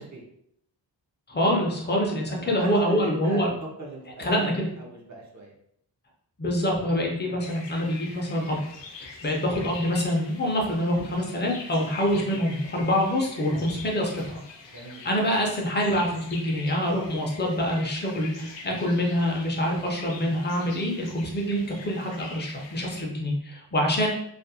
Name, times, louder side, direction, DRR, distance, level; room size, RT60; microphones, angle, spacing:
voice 1, 1.3-3.5 4.2-4.7 6.4-8.6 9.0-14.4 15.0-24.1, equal, 25° left, 0 dB, 0.4 m, -26 dB
voice 2, 2.0-4.5 4.8-5.5 14.7-15.0, right 2 dB, 40° right, -2 dB, 0.5 m, -39 dB
sound 1, 7.4-23.0, left 4 dB, 90° left, 0.5 m, -44 dB
2.3 x 2.1 x 2.6 m, 0.70 s
wide cardioid pair, 160°, 43 cm